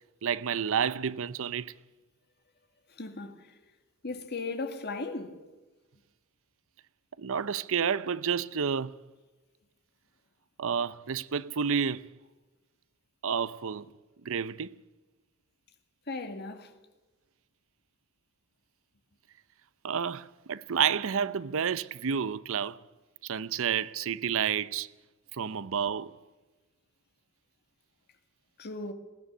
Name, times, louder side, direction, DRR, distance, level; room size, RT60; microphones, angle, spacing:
voice 1, 0.2-1.7 7.2-8.9 10.6-12.1 13.2-13.9 14.2-14.7 19.8-22.8 23.2-24.9 25.4-26.1, right 7 dB, 65° right, 0.6 m, -30 dB
voice 2, 2.9-3.6 4.0-5.4 16.1-16.7 28.6-28.9, left 3 dB, 50° left, 2.0 m, -37 dB
20.5 x 15.5 x 9.9 m
head